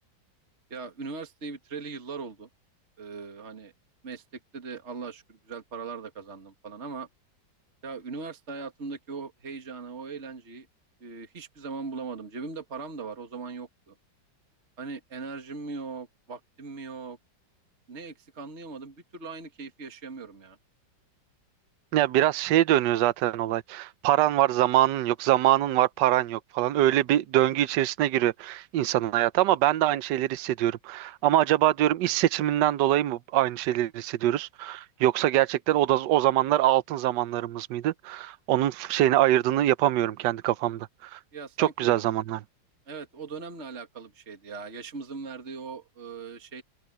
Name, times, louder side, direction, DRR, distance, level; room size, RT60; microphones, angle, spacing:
voice 1, 0.7-2.5 3.0-3.7 4.0-4.2 4.5-7.1 7.8-10.7 11.0-14.0 14.8-17.2 17.9-20.6 41.3-41.9 42.9-46.6, right 4 dB, 35° right, 2.2 m, -39 dB
voice 2, 21.9-41.2 41.6-42.4, right 13 dB, 75° right, 1.3 m, -24 dB
omnidirectional pair, 2.0 m